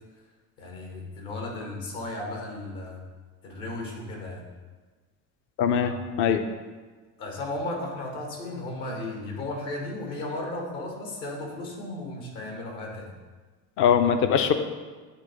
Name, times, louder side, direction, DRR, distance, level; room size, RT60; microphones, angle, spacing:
voice 1, 0.6-3.0 3.4-4.5 5.8-6.0 7.2-13.1, left 2 dB, 55° left, 0 dB, 1.6 m, -35 dB
voice 2, 5.6-6.5 13.8-14.5, left 7 dB, 30° left, 8 dB, 0.4 m, -22 dB
8.1 x 3.1 x 4.1 m, 1.4 s
figure-of-eight pair, 65°, 48 cm